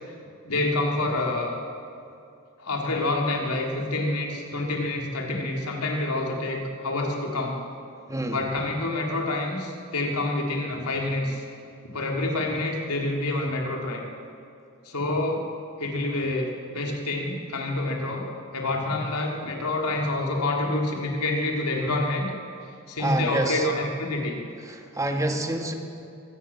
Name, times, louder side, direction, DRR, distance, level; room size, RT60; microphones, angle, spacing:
voice 1, 0.4-1.5 2.6-7.5 8.3-11.4 11.9-14.0 14.8-15.5 15.8-18.2 18.5-22.3 22.9-24.4, left 2 dB, 80° left, 0 dB, 3.5 m, -27 dB
voice 2, 23.0-23.6 24.7-25.7, right 1 dB, 15° right, 4 dB, 1.8 m, -27 dB
23.5 x 17.5 x 7.3 m, 2.6 s
head